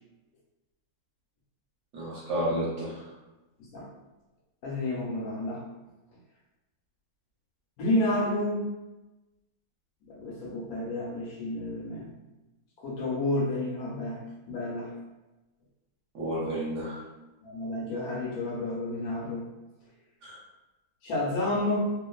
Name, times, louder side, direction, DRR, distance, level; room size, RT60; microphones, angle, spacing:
voice 1, 1.9-3.1 16.1-17.0 20.2-20.4, right 1 dB, 60° right, -7 dB, 0.9 m, -31 dB
voice 2, 4.6-5.6 7.8-8.7 10.1-12.1 12.8-14.2 14.5-14.9 17.4-19.5 21.0-21.8, left 1 dB, 75° left, -2 dB, 1.0 m, -30 dB
2.5 x 2.4 x 2.2 m, 1.1 s
omnidirectional pair, 1.7 m